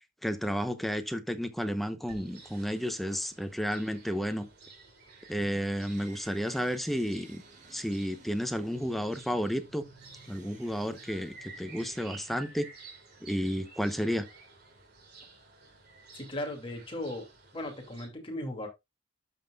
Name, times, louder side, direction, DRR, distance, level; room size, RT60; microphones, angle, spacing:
voice 1, 0.2-4.5 5.3-7.4 7.7-9.8 10.3-12.7 13.2-14.2, equal, ahead, 0.8 m, -32 dB
sound 1, 2.1-18.1, right 4 dB, 60° right, 3.0 m, -53 dB
sound 2, 5.7-12.3, right 3 dB, 40° right, 1.2 m, -56 dB
voice 2, 16.1-17.3 17.5-18.7, left 1 dB, 30° left, 2.5 m, -37 dB
12.5 x 5.9 x 2.4 m
head